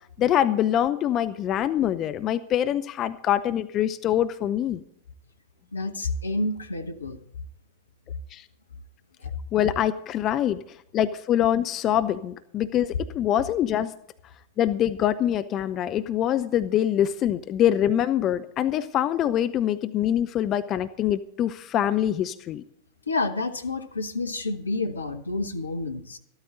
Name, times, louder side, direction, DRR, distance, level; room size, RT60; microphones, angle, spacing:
voice 1, 0.2-4.8 8.3-8.4 9.5-10.6 10.9-13.9 14.6-22.6, left 11 dB, 30° left, 11 dB, 0.6 m, -24 dB
voice 2, 5.7-7.2 9.2-9.3 23.1-26.2, left 2 dB, 75° left, 7 dB, 1.2 m, -29 dB
14.0 x 13.0 x 4.0 m, 0.71 s
figure-of-eight pair, 90°, 0 cm